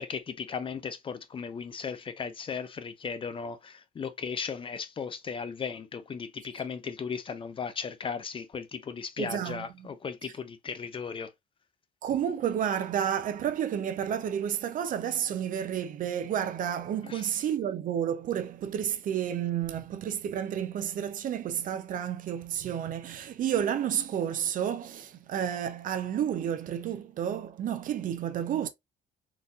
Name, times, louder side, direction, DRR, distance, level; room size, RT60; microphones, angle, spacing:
voice 1, 0.0-11.3 17.0-17.3, left 6 dB, 30° left, 0.5 m, -36 dB
voice 2, 9.2-9.9 12.0-28.7, right 9 dB, 55° right, 0.6 m, -31 dB
3.9 x 2.6 x 2.4 m
cardioid pair, 110°, 17 cm